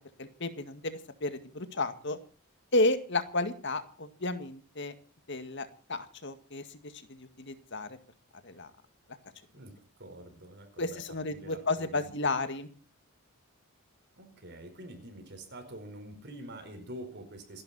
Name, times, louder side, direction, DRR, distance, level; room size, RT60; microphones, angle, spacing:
voice 1, 0.2-2.2 2.7-4.9 5.3-8.0 8.4-8.7 10.8-12.7, left 2 dB, 55° left, 10 dB, 2.0 m, -32 dB
voice 2, 10.0-12.3 14.2-17.6, right 1 dB, 50° right, 4 dB, 4.7 m, -46 dB
28.0 x 11.5 x 4.3 m, 0.39 s
head